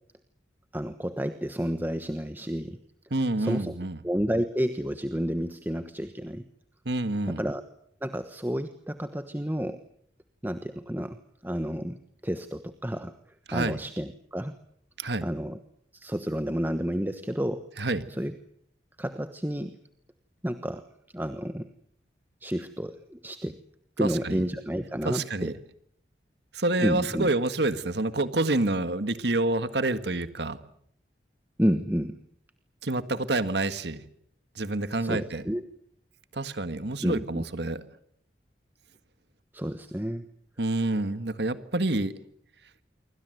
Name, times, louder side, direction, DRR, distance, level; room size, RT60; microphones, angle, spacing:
voice 1, 0.7-2.8 3.4-3.8 4.0-6.4 7.3-7.6 8.0-9.8 10.4-12.0 12.2-13.1 13.5-14.5 15.2-15.6 15.9-17.6 18.2-18.3 19.0-19.8 20.4-20.9 21.1-21.7 22.4-23.6 24.0-25.5 26.8-27.3 31.6-32.2 35.0-35.6 37.0-37.4 39.5-40.2, equal, 10° right, 9 dB, 1.2 m, -30 dB
voice 2, 3.1-4.0 6.9-7.4 13.5-13.8 15.0-15.2 17.8-18.0 24.0-24.4 25.1-25.5 26.5-30.6 32.8-34.0 34.6-35.4 36.3-37.8 40.6-42.1, right 2 dB, 70° right, 12 dB, 1.7 m, -28 dB
27.5 x 24.5 x 7.9 m, 0.69 s
head